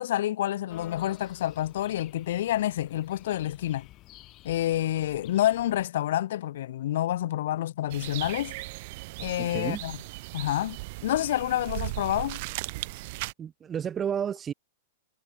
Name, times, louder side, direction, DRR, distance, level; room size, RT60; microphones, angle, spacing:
voice 1, 0.0-3.9 4.4-8.5 9.2-10.0 10.3-12.4, left 13 dB, 65° left, 1.0 m, -28 dB
sound 1, 0.7-5.9, left 17 dB, 35° left, 2.5 m, -51 dB
sound 2, 7.9-13.3, right 23 dB, 50° right, 0.9 m, -37 dB
voice 2, 9.4-9.8 13.4-14.5, right 8 dB, 20° right, 1.2 m, -31 dB
hypercardioid pair, 125°, 0 cm